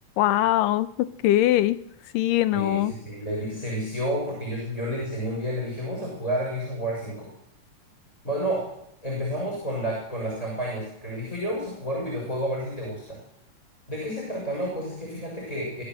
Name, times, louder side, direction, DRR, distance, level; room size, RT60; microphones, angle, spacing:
voice 1, 0.2-1.8 2.1-2.9, left 14 dB, 85° left, 15 dB, 2.6 m, -22 dB
voice 2, 2.5-7.3 8.2-8.7 9.0-13.2 13.9-15.8, equal, 10° left, -1 dB, 6.6 m, -30 dB
23.5 x 15.0 x 7.8 m, 0.78 s
omnidirectional pair, 3.8 m